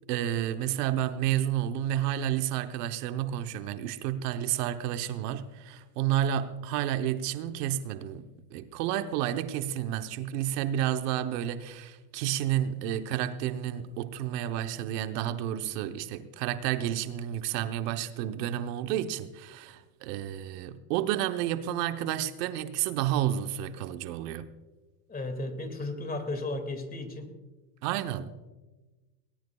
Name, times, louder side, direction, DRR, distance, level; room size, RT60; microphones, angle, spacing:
voice 1, 0.1-24.5 27.8-28.5, right 11 dB, 80° right, 1.0 m, -31 dB
voice 2, 25.1-27.3, left 2 dB, 20° left, 2.1 m, -34 dB
19.5 x 19.0 x 2.3 m
supercardioid pair, 120°, 47 cm